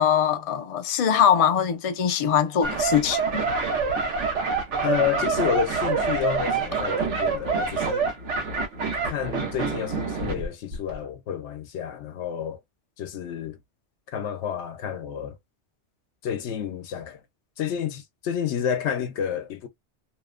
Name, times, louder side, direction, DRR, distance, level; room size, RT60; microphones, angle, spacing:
voice 1, 0.0-3.5, left 8 dB, 60° left, 0.3 m, -22 dB
sound 1, 2.6-10.5 10.7-11.0, right 5 dB, 90° right, 1.1 m, -26 dB
voice 2, 4.8-8.1 9.0-12.6 13.0-13.6 14.1-15.4 16.2-17.2 17.6-19.7, left 9 dB, 80° left, 0.9 m, -30 dB
2.8 x 2.0 x 2.4 m
omnidirectional pair, 1.2 m